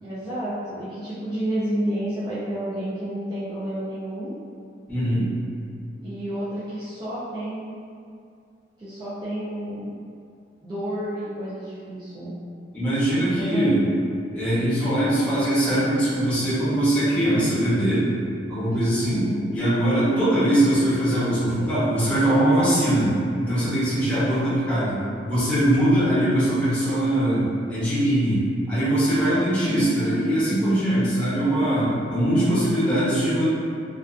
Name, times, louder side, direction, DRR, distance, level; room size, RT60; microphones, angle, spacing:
voice 1, 0.0-4.4 6.0-7.7 8.8-9.9 10.6-12.3 13.4-13.8 19.0-19.5 29.6-30.2 32.4-32.9, right 1 dB, 20° right, -12 dB, 0.4 m, -30 dB
voice 2, 4.9-5.3 12.7-13.8 14.3-18.1 18.5-19.2 19.5-28.4 28.7-33.4, right 1 dB, 5° left, -13 dB, 0.8 m, -21 dB
2.4 x 2.3 x 2.3 m, 2.4 s
head